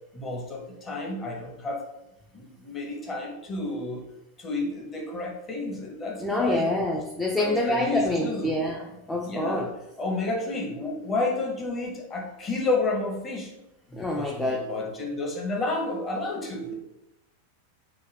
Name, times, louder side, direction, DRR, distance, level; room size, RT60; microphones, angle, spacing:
voice 1, 0.1-1.9 2.3-4.1 4.4-6.9 7.4-8.6 9.2-13.5 13.9-16.7, left 2 dB, 25° left, -1 dB, 0.8 m, -31 dB
voice 2, 6.2-8.8 9.1-9.7 13.9-14.7, left 1 dB, 10° left, 0 dB, 0.3 m, -26 dB
3.7 x 2.1 x 3.2 m, 0.91 s
figure-of-eight pair, 90°, 0 cm